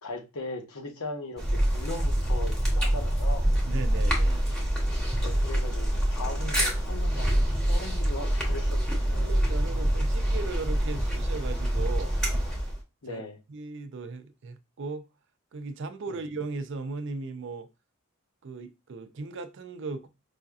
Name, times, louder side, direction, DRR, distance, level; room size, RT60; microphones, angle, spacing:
voice 1, 0.0-3.5 5.2-9.3 13.0-13.4 16.1-16.2, left 2 dB, 80° left, 1.0 m, -39 dB
sound 1, 1.4-12.8, right 1 dB, 5° left, 1.0 m, -26 dB
voice 2, 3.7-4.5 9.1-12.2 13.0-13.2 13.5-15.1 15.5-17.7 18.4-20.1, right 3 dB, 55° right, 0.5 m, -37 dB
4.9 x 2.7 x 2.3 m
head